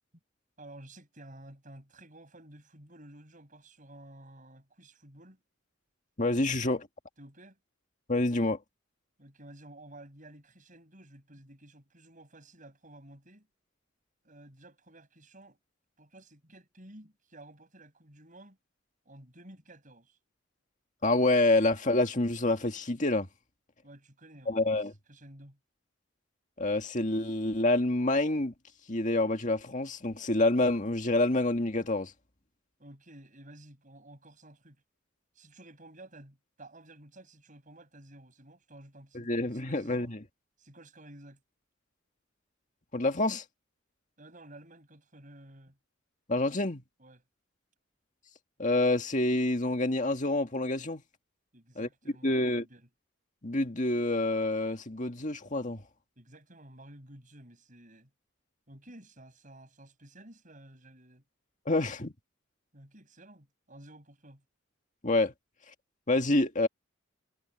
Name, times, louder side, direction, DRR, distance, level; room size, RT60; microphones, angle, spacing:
voice 1, 0.6-5.4 7.2-7.6 9.2-13.5 14.2-15.6 16.0-18.6 19.1-20.2 23.8-25.6 32.8-34.8 35.4-40.1 40.6-41.4 44.2-45.8 47.0-47.2 51.5-52.9 56.2-58.1 58.7-61.2 62.7-64.4, right 1 dB, 40° right, 7.2 m, -53 dB
voice 2, 6.2-6.9 8.1-8.6 21.0-23.3 24.5-24.9 26.6-28.5 28.9-32.1 39.1-40.2 42.9-43.4 46.3-46.8 48.6-51.0 51.8-51.9 52.2-52.6 53.4-55.8 61.7-62.1 65.0-65.3 66.1-66.7, left 2 dB, 40° left, 2.0 m, -27 dB
head